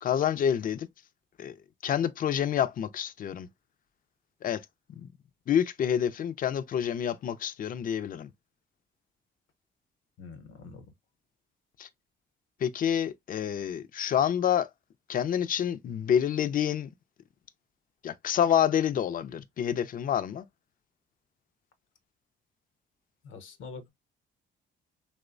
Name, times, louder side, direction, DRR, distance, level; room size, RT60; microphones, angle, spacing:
voice 1, 0.0-0.9 1.4-1.5 1.8-3.5 4.4-4.6 4.9-5.1 5.5-8.3 11.8-11.9 12.6-14.7 15.1-16.9 18.0-20.5, left 9 dB, 45° left, 0.4 m, -28 dB
voice 2, 10.2-10.9 23.2-23.9, left 4 dB, 80° left, 0.7 m, -45 dB
2.9 x 2.1 x 2.4 m
cardioid pair, 90°, 20 cm